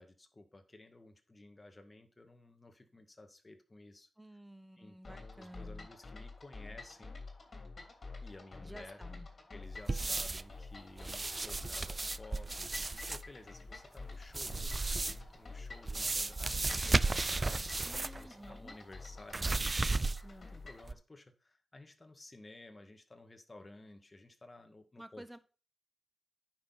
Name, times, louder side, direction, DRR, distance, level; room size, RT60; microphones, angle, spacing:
voice 1, 0.0-4.1 4.8-7.2 8.2-9.0 9.5-25.4, left 2 dB, 30° left, 6 dB, 1.9 m, -55 dB
voice 2, 4.2-5.9 8.6-9.3 17.8-18.8 25.0-25.4, right 1 dB, 10° right, 13 dB, 1.0 m, -52 dB
sound 1, 5.0-20.9, left 3 dB, 50° left, 2.9 m, -49 dB
sound 2, 9.9-10.5 11.0-13.2 14.3-15.3 15.9-18.2 18.5-18.6 19.3-20.4 20.8-20.9, right 3 dB, 30° right, 0.4 m, -34 dB
9.6 x 6.2 x 4.0 m, 0.36 s
cardioid pair, 70°, 0 cm